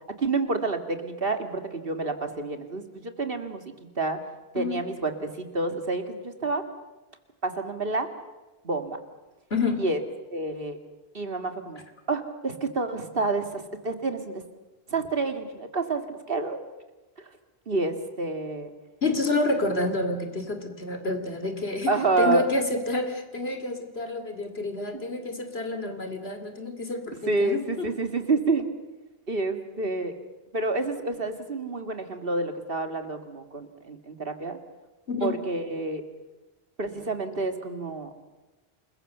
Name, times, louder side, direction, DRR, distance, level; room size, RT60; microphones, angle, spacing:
voice 1, 0.2-3.6 4.0-4.2 4.5-6.6 7.4-8.1 8.6-9.0 9.8-10.0 10.3-10.8 11.1-11.8 12.1-14.4 14.9-16.6 17.7-18.7 21.9-22.4 24.9-25.0 27.3-28.7 29.3-30.1 30.5-34.6 35.2-36.0 36.8-38.1, right 3 dB, 65° right, 7 dB, 2.4 m, -28 dB
voice 2, 9.5-9.8 19.0-27.9 35.1-35.4, left 2 dB, 75° left, 7 dB, 3.1 m, -29 dB
28.0 x 21.5 x 6.8 m, 1.1 s
omnidirectional pair, 1.0 m